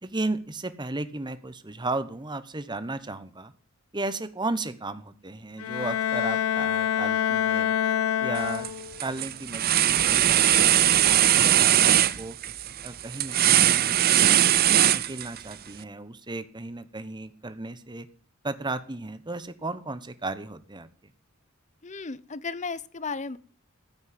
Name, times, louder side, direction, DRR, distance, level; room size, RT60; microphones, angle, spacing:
voice 1, 0.0-3.5 3.9-7.7 8.2-8.7 9.0-12.4 12.8-14.0 14.8-18.1 18.4-20.9, right 2 dB, 20° right, 12 dB, 1.1 m, -35 dB
Bowed string instrument, 5.6-9.1, left 10 dB, 90° left, 0.5 m, -26 dB
sound 1, 8.4-8.7 9.0-15.5, right 11 dB, 45° right, 0.6 m, -20 dB
voice 2, 21.8-23.4, left 4 dB, 35° left, 17 dB, 0.7 m, -34 dB
15.0 x 6.4 x 9.7 m, 0.43 s
head